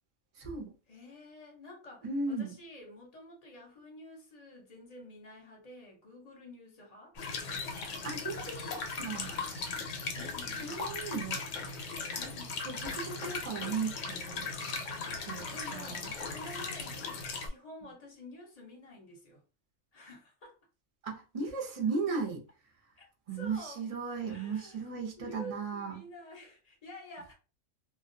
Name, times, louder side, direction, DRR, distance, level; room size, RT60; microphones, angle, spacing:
voice 1, 0.4-0.7 2.0-2.5 8.0-9.4 10.6-11.4 12.7-14.5 15.3-15.4 15.7-16.1 21.0-22.4 23.3-26.0, right 4 dB, 45° right, 0.4 m, -36 dB
voice 2, 0.9-7.2 10.1-10.8 12.2-12.7 15.0-19.4 19.9-20.6 23.0-23.1 23.3-23.8 24.2-24.8 25.2-27.3, left 1 dB, 40° left, 0.7 m, -50 dB
sound 1, 7.2-17.5, left 4 dB, 70° left, 0.9 m, -38 dB
2.2 x 2.2 x 2.6 m
omnidirectional pair, 1.4 m